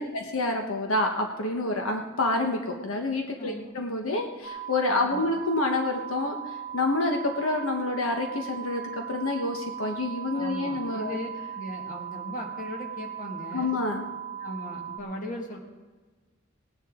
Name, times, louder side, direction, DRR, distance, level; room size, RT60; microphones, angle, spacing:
voice 1, 0.0-6.3 6.7-8.8 9.1-11.2 13.5-14.1, left 2 dB, 85° left, 3 dB, 1.2 m, -28 dB
voice 2, 3.4-3.7 4.9-5.3 10.3-11.3 11.5-13.7 14.4-15.6, left 1 dB, 40° left, 1 dB, 1.9 m, -38 dB
sound 1, 4.4-15.0, right 9 dB, 20° right, 1.0 m, -38 dB
18.5 x 9.8 x 3.8 m, 1.3 s
head